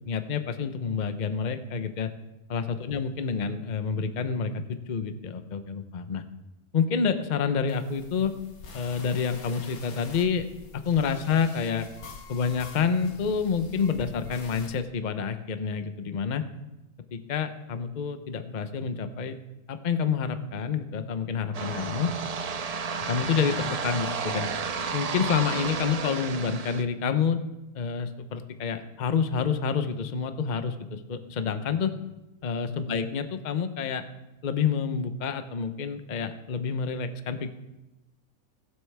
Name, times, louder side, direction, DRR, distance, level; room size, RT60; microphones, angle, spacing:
voice 1, 0.1-2.1 2.5-6.2 6.7-8.3 8.7-10.5 10.7-11.9 12.3-16.4 17.1-19.4 19.7-22.1 23.0-24.5 24.9-27.4 27.7-31.9 32.4-34.0 34.4-37.5, left 6 dB, 40° left, 9 dB, 0.7 m, -28 dB
sound 1, 7.7-14.8, left 4 dB, 75° left, 1.7 m, -46 dB
sound 2, 21.5-26.8, right 5 dB, 70° right, 0.3 m, -32 dB
21.0 x 7.9 x 3.4 m, 0.98 s
omnidirectional pair, 1.5 m